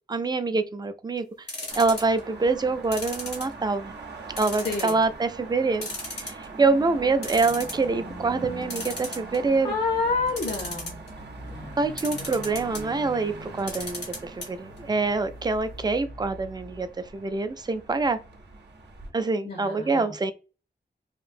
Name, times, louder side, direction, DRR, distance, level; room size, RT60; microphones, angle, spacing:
voice 1, 0.1-1.2 1.8-3.9 4.4-9.7 11.8-16.9 17.1-18.2 19.1-20.3, right 3 dB, 25° right, 0.3 m, -25 dB
sound 1, 1.5-2.2 2.9-3.9 4.4-5.0 5.4-5.5 5.8-6.6 7.0-7.1 7.2-7.8 8.7-9.6 10.3-11.1 12.0-12.8 13.6-14.5 14.8-14.9 15.1-15.2, left 2 dB, 85° left, 1.2 m, -35 dB
sound 2, 1.7-19.1, right 3 dB, 80° right, 0.6 m, -41 dB
voice 2, 9.6-11.0 11.4-11.8 19.4-20.3, left 4 dB, 65° left, 0.6 m, -29 dB
2.9 x 2.6 x 2.4 m
wide cardioid pair, 95°, 18 cm